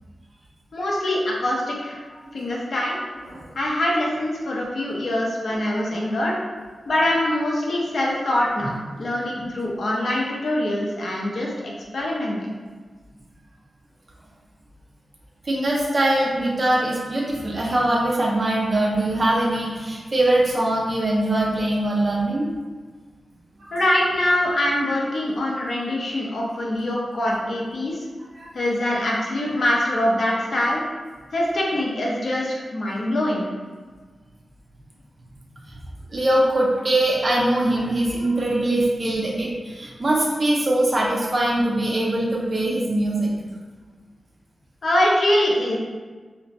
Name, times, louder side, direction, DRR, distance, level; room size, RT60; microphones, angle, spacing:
voice 1, 0.7-2.0 2.3-3.0 3.6-6.3 6.9-8.7 9.0-11.5 11.9-12.5 23.7-28.1 28.5-30.8 31.3-33.5 44.8-45.8, left 1 dB, 55° left, -4 dB, 0.6 m, -23 dB
voice 2, 5.7-6.1 8.6-8.7 9.4-9.5 15.4-22.5 23.6-23.8 28.4-28.5 35.6-35.7 36.1-43.3, right 1 dB, 30° right, -4 dB, 0.4 m, -22 dB
2.5 x 2.1 x 4.0 m, 1.4 s
wide cardioid pair, 140°, 0 cm